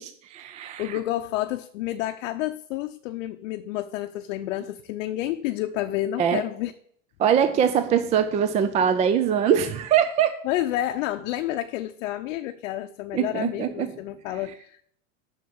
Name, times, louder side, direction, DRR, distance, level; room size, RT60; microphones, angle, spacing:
voice 1, 0.0-1.0 6.2-6.4 7.2-10.3 13.1-13.9, right 8 dB, 20° right, 0.3 m, -22 dB
voice 2, 0.8-6.7 10.4-14.8, left 14 dB, 65° left, 0.7 m, -30 dB
6.6 x 6.5 x 6.9 m
supercardioid pair, 125°, 40 cm